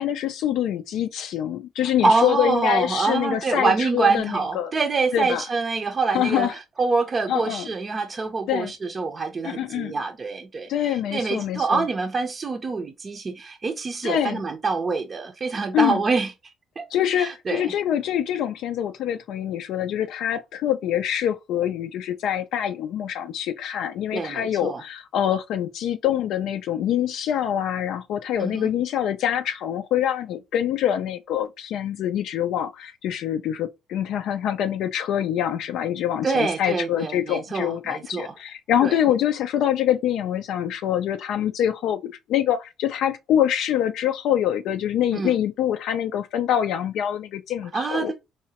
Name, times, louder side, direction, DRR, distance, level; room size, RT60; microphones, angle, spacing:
voice 1, 0.0-4.7 5.1-5.4 6.1-6.5 7.3-7.7 8.5-8.7 9.4-9.9 10.7-11.8 14.0-14.4 15.7-16.0 16.9-48.1, left 10 dB, 75° left, 0.3 m, -25 dB
voice 2, 2.0-16.9 17.2-17.7 24.1-24.8 28.4-28.7 36.2-38.3 38.8-39.0 45.1-45.3 47.7-48.1, right 4 dB, 35° right, 0.5 m, -25 dB
4.7 x 2.1 x 2.8 m
cardioid pair, 95°, 0 cm